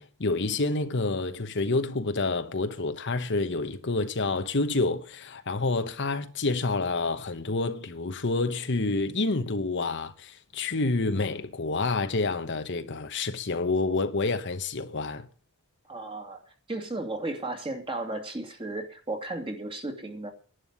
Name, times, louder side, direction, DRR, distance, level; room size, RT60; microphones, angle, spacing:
voice 1, 0.0-15.3, left 3 dB, 55° left, 1.1 m, -28 dB
voice 2, 15.9-16.4 16.7-20.3, right 2 dB, 25° right, 2.6 m, -34 dB
11.5 x 9.2 x 9.6 m
head